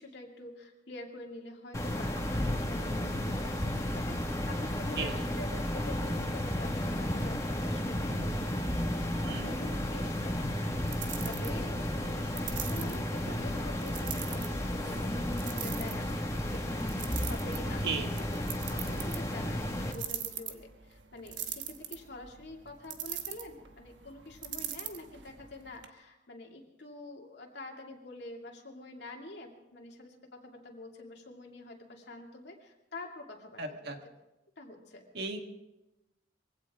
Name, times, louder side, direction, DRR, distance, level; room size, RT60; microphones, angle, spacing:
voice 1, 0.0-9.0 9.3-10.7 11.2-33.9 34.6-35.0, left 2 dB, 60° left, 1 dB, 2.4 m, -47 dB
sound 1, 1.7-19.9, left 1 dB, 15° left, 1.7 m, -33 dB
sound 2, 9.0-25.9, right 9 dB, 75° right, 1.2 m, -44 dB
voice 2, 33.6-34.0 35.1-35.4, right 4 dB, 60° right, 4 dB, 1.8 m, -35 dB
22.5 x 16.5 x 3.7 m, 0.98 s
head